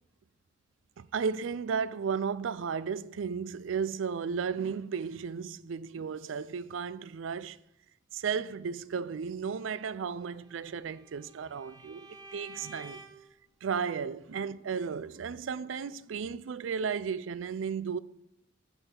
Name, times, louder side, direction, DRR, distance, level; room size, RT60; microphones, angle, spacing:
voice 1, 1.0-7.6 8.1-13.0 13.6-18.0, right 6 dB, 85° right, 0.4 m, -34 dB
Bowed string instrument, 10.3-13.3, right 2 dB, 20° right, 0.6 m, -51 dB
14.5 x 6.1 x 3.8 m
head